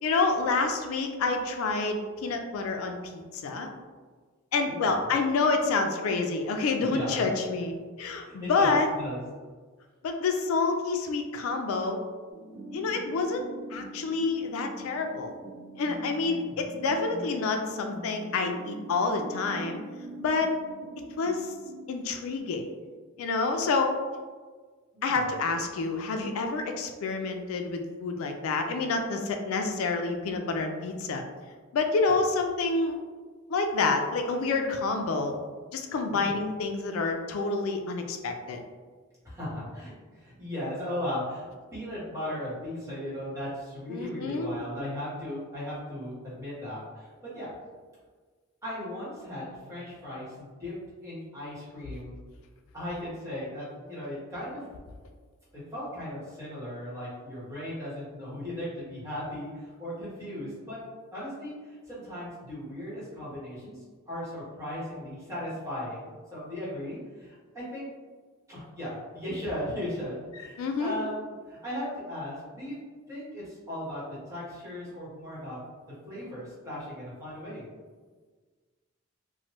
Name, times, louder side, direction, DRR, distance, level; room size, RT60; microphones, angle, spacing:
voice 1, 0.0-3.7 4.5-8.9 10.0-12.0 12.7-13.4 13.7-15.3 15.8-19.8 20.2-20.5 21.2-21.5 21.9-22.7 23.2-23.9 25.0-31.2 31.7-33.0 33.5-35.4 35.7-38.6 43.9-44.5 70.6-71.0, left 3 dB, 80° left, 5 dB, 0.3 m, -28 dB
voice 2, 6.8-7.3 8.2-9.2 16.3-16.6 24.9-25.2 36.1-36.3 39.2-39.9 40.2-41.4 41.7-47.5 48.6-50.7 51.0-52.2 52.7-54.6 55.5-60.8 61.1-67.9 68.5-72.7 73.1-75.6 76.1-77.6, left 1 dB, 15° right, -9 dB, 1.1 m, -37 dB
sound 1, 12.3-22.4, equal, 50° right, 0.5 m, -43 dB
3.1 x 2.1 x 3.0 m, 1.5 s
head